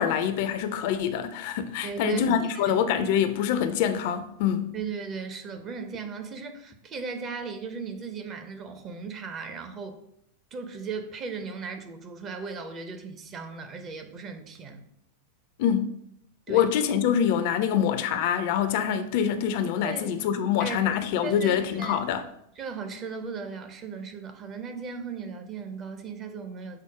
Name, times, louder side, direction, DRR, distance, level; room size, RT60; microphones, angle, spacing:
voice 1, 0.0-4.7 15.6-16.0 16.5-22.2, left 8 dB, 50° left, 0.4 m, -25 dB
voice 2, 1.8-2.8 4.7-10.0 10.5-14.8 16.5-16.7 19.8-20.2 20.6-22.0 22.6-26.8, right 5 dB, 30° right, 0.6 m, -36 dB
5.5 x 2.0 x 4.7 m
figure-of-eight pair, 90°, 0 cm